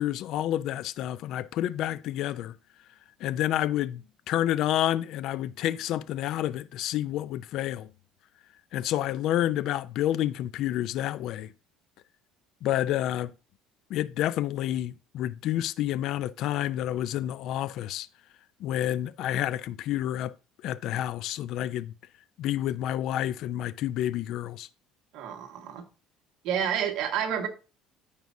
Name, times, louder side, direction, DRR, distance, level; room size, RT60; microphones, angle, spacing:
voice 1, 0.0-2.6 3.2-7.9 8.7-11.5 12.6-13.3 13.9-18.1 18.6-20.3 20.6-21.9 22.4-24.7, left 12 dB, 60° left, 0.5 m, -29 dB
voice 2, 25.1-25.8 26.4-27.5, right 8 dB, 65° right, 1.7 m, -29 dB
14.0 x 4.7 x 2.7 m
cardioid pair, 140°, 0 cm